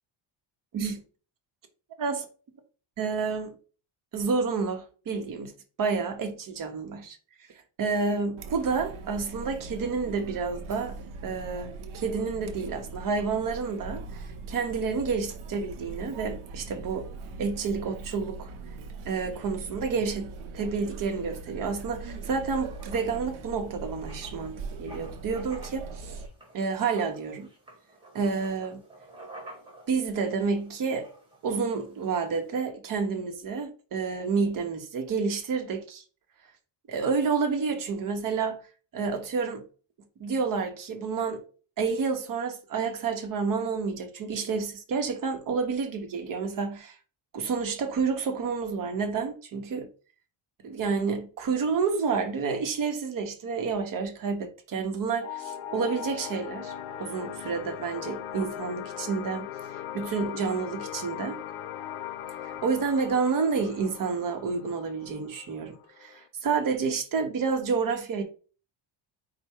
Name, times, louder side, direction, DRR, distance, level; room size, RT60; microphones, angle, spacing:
voice 1, 3.0-3.5 4.1-5.5 5.8-7.2 7.8-11.0 11.2-17.1 17.4-18.5 19.1-26.2 26.5-27.5 28.1-28.8 29.9-31.1 31.4-36.0 36.9-38.6 38.9-39.6 40.2-41.4 41.8-47.0 47.3-49.9 50.6-56.7 57.0-59.5 59.7-61.4 62.4-68.2, right 5 dB, 45° right, 0.8 m, -29 dB
Chatter, 8.4-26.3, right 4 dB, 85° right, 0.7 m, -41 dB
Writing, 22.1-32.5, right 1 dB, 10° right, 1.4 m, -51 dB
sound 1, 55.2-66.3, left 10 dB, 80° left, 0.6 m, -39 dB
4.5 x 2.1 x 4.3 m
cardioid pair, 155°, 47 cm